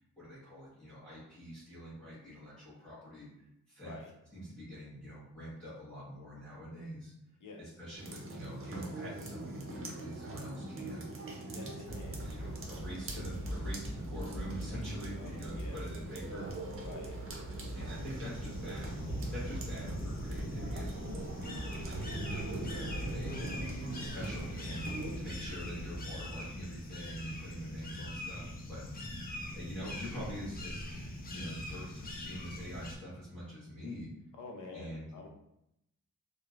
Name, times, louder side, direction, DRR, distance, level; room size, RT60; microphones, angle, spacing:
voice 1, 0.0-3.3 3.7-4.0 4.3-7.1 7.6-11.1 11.6-11.7 12.2-16.8 17.6-18.9 19.3-21.4 21.8-23.4 24.0-30.9 31.3-34.1 34.7-35.3, equal, 5° left, -10 dB, 1.1 m, -45 dB
voice 2, 7.4-7.7 11.5-12.3 14.7-14.8 15.1-15.8 16.8-17.2 34.3-35.3, left 3 dB, 75° left, 1 dB, 0.6 m, -48 dB
sound 1, 8.0-25.2, right 2 dB, 45° right, 0.5 m, -43 dB
Thunder / Rain, 11.9-26.3, right 1 dB, 20° right, 1.2 m, -42 dB
sound 2, 17.9-33.0, left 1 dB, 30° left, 0.5 m, -43 dB
3.0 x 2.1 x 2.4 m, 0.83 s
wide cardioid pair, 120°, 32 cm